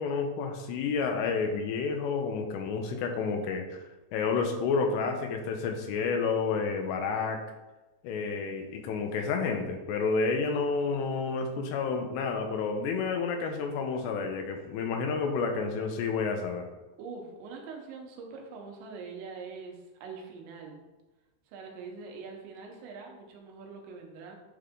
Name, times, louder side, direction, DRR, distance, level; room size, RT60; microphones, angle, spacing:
voice 1, 0.0-3.8 4.1-7.4 8.0-16.7, left 5 dB, 85° left, 4 dB, 2.9 m, -30 dB
voice 2, 17.0-20.8 21.5-24.4, right 4 dB, 85° right, 1 dB, 3.3 m, -43 dB
9.5 x 3.9 x 3.6 m, 1.1 s
omnidirectional pair, 5.1 m